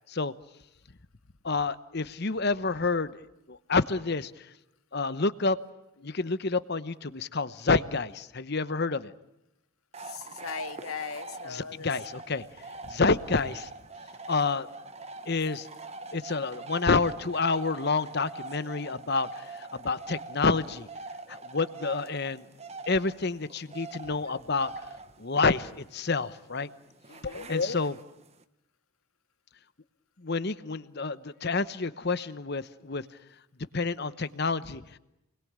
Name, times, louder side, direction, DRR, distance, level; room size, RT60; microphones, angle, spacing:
voice 1, 1.4-3.2 3.5-4.5 4.9-5.6 6.0-9.1 11.5-12.5 12.8-13.7 14.3-14.7 15.3-15.7 16.1-20.9 21.3-22.4 22.9-24.9 25.2-26.7 27.2-28.0 30.2-33.0 33.7-35.0, left 4 dB, 45° left, 14 dB, 0.9 m, -28 dB
sound 1, 9.9-28.4, right 3 dB, 30° right, 1.1 m, -44 dB
voice 2, 10.0-11.9 27.1-27.5, left 5 dB, 75° left, 8 dB, 1.8 m, -39 dB
29.0 x 21.5 x 8.8 m, 0.89 s
head